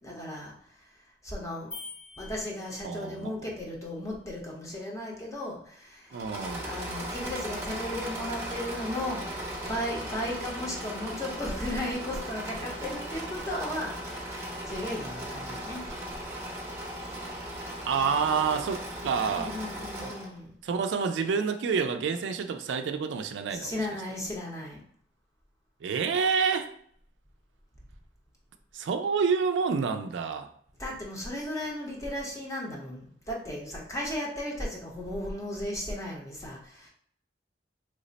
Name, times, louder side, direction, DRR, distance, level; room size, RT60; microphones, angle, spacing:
voice 1, 0.0-0.5 1.2-1.7 2.2-6.1 6.6-15.8 19.2-20.5 23.5-24.8 30.8-36.9, left 1 dB, 20° left, -2 dB, 0.8 m, -35 dB
sound 1, 1.7-3.2, left 3 dB, 75° left, 1.4 m, -45 dB
voice 2, 2.8-3.5 6.1-6.7 17.9-19.6 20.6-23.7 25.8-26.7 28.7-30.5, right 5 dB, 90° right, 7 dB, 0.4 m, -28 dB
Engine / Mechanisms, 6.1-20.4, right 1 dB, 15° right, 0.8 m, -37 dB
3.2 x 2.1 x 3.9 m, 0.62 s
head